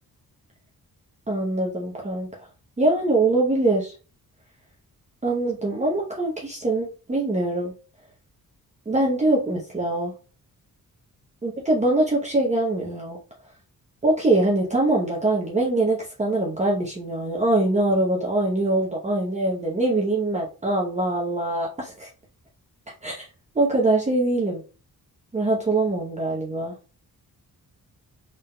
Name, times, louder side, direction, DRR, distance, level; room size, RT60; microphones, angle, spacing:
voice 1, 1.3-2.5 2.8-3.9 5.2-7.7 8.9-10.1 11.4-13.2 14.0-22.1 23.0-23.3 23.5-24.6 25.3-26.7, right 2 dB, 20° right, -3 dB, 0.8 m, -23 dB
4.0 x 3.6 x 2.2 m, 0.34 s
wide cardioid pair, 115°, 35 cm